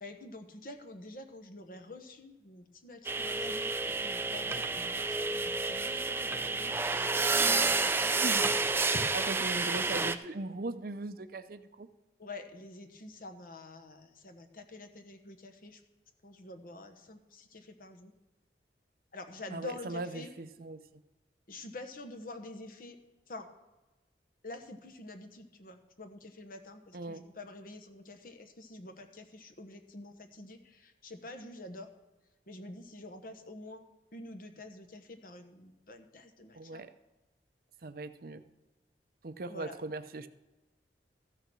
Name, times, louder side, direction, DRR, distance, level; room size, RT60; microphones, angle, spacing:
voice 1, 0.0-7.8 8.9-9.0 12.2-15.8 16.2-18.1 19.1-20.3 21.5-23.0 23.3-23.5 24.4-31.9 32.5-33.8 34.1-36.8 39.5-39.7, left 2 dB, 50° left, 6 dB, 1.0 m, -47 dB
sound 1, 3.0-10.1, right 3 dB, 15° right, 0.4 m, -30 dB
voice 2, 8.2-8.5 8.8-11.9 19.5-20.8 26.9-27.3 36.5-36.9 37.8-38.4 39.2-40.3, right 2 dB, 55° right, 11 dB, 0.6 m, -39 dB
14.0 x 6.6 x 6.2 m, 1.1 s
head